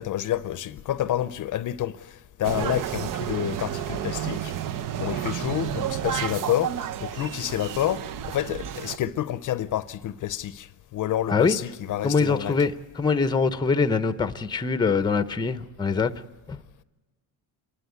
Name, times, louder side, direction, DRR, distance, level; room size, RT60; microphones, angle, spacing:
voice 1, 0.0-4.5 5.0-12.5, left 12 dB, 50° left, 0.7 m, -29 dB
sound 1, 2.4-9.0, right 10 dB, 55° right, 0.7 m, -31 dB
voice 2, 12.0-16.1 16.5-16.6, left 4 dB, 10° left, 0.7 m, -23 dB
27.5 x 11.5 x 9.6 m
cardioid pair, 125°, 40 cm